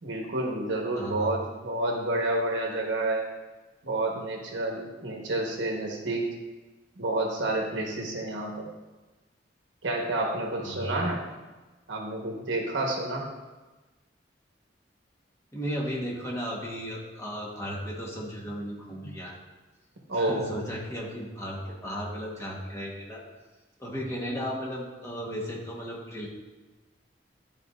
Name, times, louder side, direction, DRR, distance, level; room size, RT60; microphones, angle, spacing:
voice 1, 0.0-3.3 3.8-6.3 7.0-8.5 9.8-11.3 11.9-13.2 20.1-20.5, right 2 dB, 80° right, 0 dB, 1.2 m, -29 dB
voice 2, 0.9-1.3 7.7-8.0 10.6-11.0 15.5-19.4 20.1-23.2 23.8-26.3, equal, 15° left, -4 dB, 1.2 m, -35 dB
11.5 x 4.1 x 2.5 m, 1.2 s
head